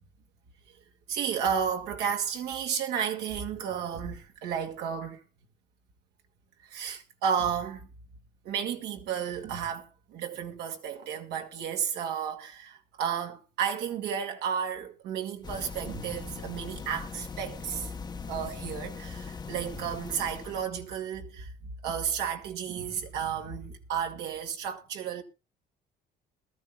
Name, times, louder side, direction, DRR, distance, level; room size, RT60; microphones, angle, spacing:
voice 1, 1.1-5.2 6.7-7.9 8.4-17.9 18.3-21.5 21.8-25.2, right 7 dB, 80° right, 2.1 m, -32 dB
sound 1, 15.4-20.7, left 5 dB, 25° left, 0.8 m, -40 dB
21.0 x 13.5 x 2.3 m
cardioid pair, 110°, 17 cm